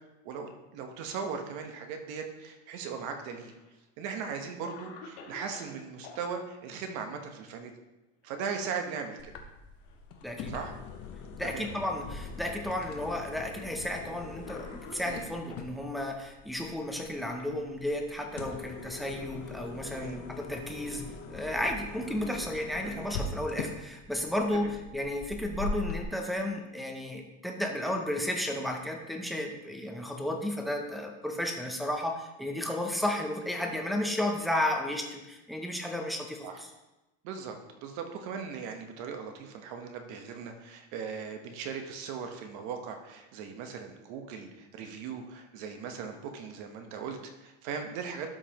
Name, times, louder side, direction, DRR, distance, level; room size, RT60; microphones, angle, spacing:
voice 1, 0.2-3.5 4.0-7.7 8.2-9.3 10.5-10.7 11.4-11.7 15.1-15.3 19.8-20.2 22.8-23.1 24.5-24.7 36.4-36.6 37.2-37.6 37.8-48.3, right 6 dB, 50° right, 5 dB, 1.1 m, -38 dB
Cough, 2.9-3.7 4.3-4.4 4.7-6.2 8.1-8.5 8.8-9.0 9.8-10.5 11.3-11.4 12.4-12.5 13.6-13.8 14.4-15.7 16.7-18.1, left 4 dB, 75° left, 1.9 m, -51 dB
sound 1, 9.2-26.0, left 4 dB, 40° left, 0.9 m, -42 dB
voice 2, 10.2-10.5 11.4-21.0 21.3-36.7, left 1 dB, ahead, 1 dB, 0.5 m, -33 dB
12.5 x 5.2 x 3.0 m, 1.0 s
cardioid pair, 165°, 36 cm